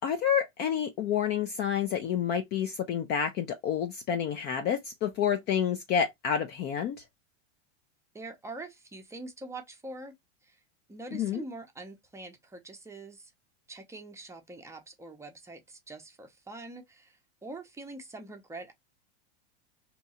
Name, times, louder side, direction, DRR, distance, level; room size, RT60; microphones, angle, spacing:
voice 1, 0.0-7.0 11.1-11.4, left 8 dB, 30° left, 0.4 m, -29 dB
voice 2, 8.1-10.1 10.4-10.6 10.9-13.3 13.7-18.7, right 2 dB, 10° right, 0.6 m, -44 dB
2.8 x 2.2 x 4.1 m
supercardioid pair, 125°, 33 cm